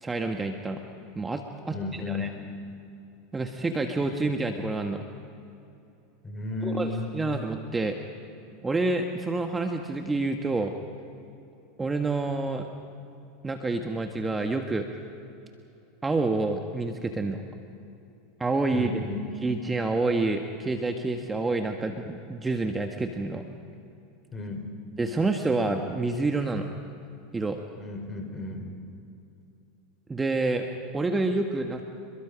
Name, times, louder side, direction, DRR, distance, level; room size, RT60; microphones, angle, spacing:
voice 1, 0.0-0.8 1.1-2.3 3.3-5.0 6.6-8.0 8.6-10.7 11.8-12.7 13.4-14.9 16.0-17.4 18.4-18.9 19.4-23.4 25.0-26.7 27.3-27.6 30.1-30.7 30.9-31.8, right 3 dB, 15° right, 5 dB, 1.5 m, -28 dB
voice 2, 1.7-2.4 6.2-7.1 18.7-19.3 24.3-24.7 27.8-28.7, left 3 dB, 25° left, 4 dB, 4.9 m, -33 dB
28.5 x 22.0 x 5.1 m, 2.7 s
hypercardioid pair, 85°, 0 cm